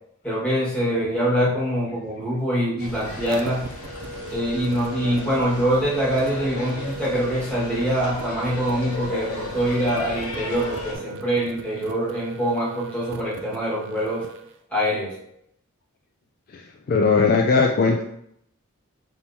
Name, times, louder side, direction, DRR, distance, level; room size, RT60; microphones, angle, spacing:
voice 1, 0.2-3.7 4.3-14.2 14.7-15.1, equal, 5° left, -8 dB, 1.5 m, -24 dB
sound 1, 2.8-10.9, left 2 dB, 80° left, 1.0 m, -35 dB
sound 2, 3.2-14.5, right 1 dB, 55° right, 0.3 m, -38 dB
voice 2, 16.5-18.0, left 4 dB, 40° left, 1 dB, 0.3 m, -20 dB
4.4 x 3.5 x 2.7 m, 0.75 s
head